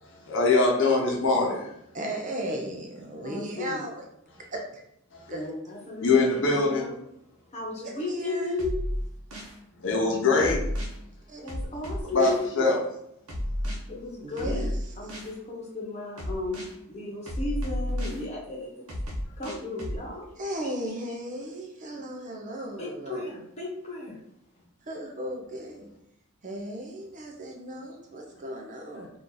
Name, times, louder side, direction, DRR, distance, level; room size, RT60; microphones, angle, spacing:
voice 1, 0.3-1.7 6.0-6.8 9.8-10.6 12.1-12.8, left 3 dB, 60° left, -2 dB, 0.8 m, -22 dB
voice 2, 1.9-4.0 4.5-4.8 5.3-5.4 7.8-8.5 11.3-11.4 14.2-14.7 20.4-23.3 24.8-25.9 26.4-29.1, right 1 dB, 35° right, 1 dB, 0.5 m, -36 dB
voice 3, 3.2-3.8 5.3-7.0 7.5-8.8 11.4-12.7 13.9-14.7 15.0-16.6 16.9-18.8 19.4-20.3 22.8-24.2, left 2 dB, 30° left, -3 dB, 1.0 m, -34 dB
sound 1, 8.6-9.6 10.4-11.0 11.5-12.4 13.3-13.8 14.4-15.3 16.2-16.7 17.3-18.2 18.9-20.0, equal, 70° right, 0.9 m, -31 dB
3.0 x 2.5 x 3.8 m, 0.76 s
head